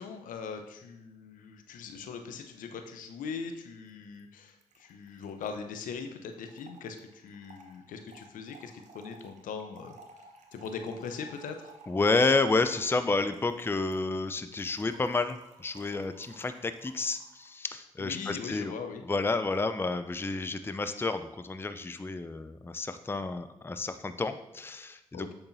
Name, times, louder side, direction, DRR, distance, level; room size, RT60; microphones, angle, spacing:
voice 1, 0.0-9.9 10.5-11.7 18.0-19.0 25.1-25.3, left 5 dB, 70° left, 6 dB, 0.8 m, -40 dB
Trickle dribble / Fill (with liquid), 3.9-4.0 4.2-4.3 4.5-17.6, right 3 dB, 60° right, 1.0 m, -56 dB
voice 2, 11.9-18.7 19.1-25.3, left 3 dB, 15° left, 10 dB, 0.5 m, -30 dB
8.0 x 6.7 x 2.7 m, 0.86 s
hypercardioid pair, 40°, 14 cm